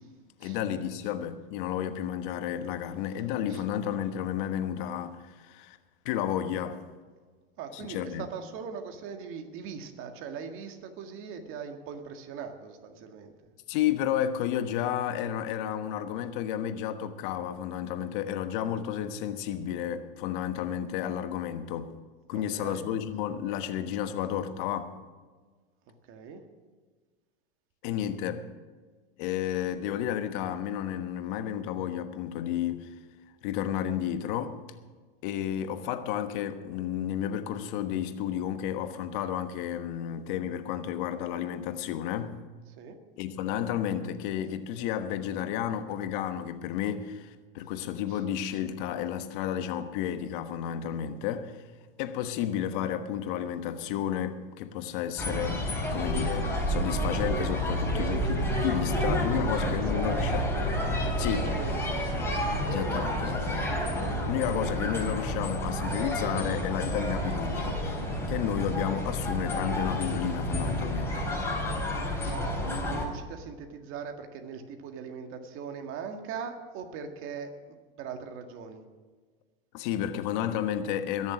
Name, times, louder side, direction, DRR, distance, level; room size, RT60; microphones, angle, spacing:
voice 1, 0.4-5.8 6.0-6.8 7.7-8.2 13.7-21.9 22.3-24.9 27.8-28.5 29.2-32.9 33.4-34.6 35.2-42.4 43.2-51.6 52.0-55.6 55.9-60.4 61.2-61.5 62.7-63.7 64.3-67.7 68.3-71.2 79.7-81.3, left 10 dB, 55° left, 1.3 m, -32 dB
voice 2, 7.6-13.5 22.3-22.9 25.9-26.4 42.8-43.0 48.1-48.2 48.5-48.6 59.3-60.4 61.0-63.0 72.2-78.8, right 6 dB, 45° right, 1.9 m, -41 dB
sound 1, 55.2-73.1, equal, 10° left, 3.9 m, -30 dB
21.5 x 7.3 x 6.1 m
hypercardioid pair, 105°, 30 cm